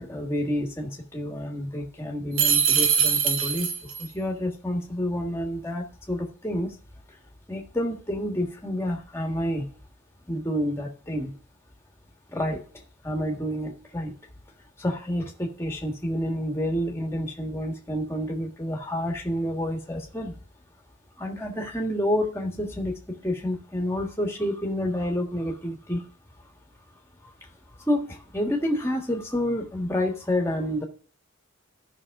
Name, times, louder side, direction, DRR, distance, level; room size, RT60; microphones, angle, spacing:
voice 1, 0.0-6.8 7.1-7.2 7.5-9.7 10.3-11.3 12.3-12.6 13.0-14.1 14.8-20.4 21.2-26.0 27.2-27.5 27.7-30.8, equal, 10° left, 1 dB, 1.6 m, -29 dB
sound 1, 2.4-4.1, right 7 dB, 75° right, 1.2 m, -22 dB
14.0 x 5.9 x 3.7 m, 0.42 s
head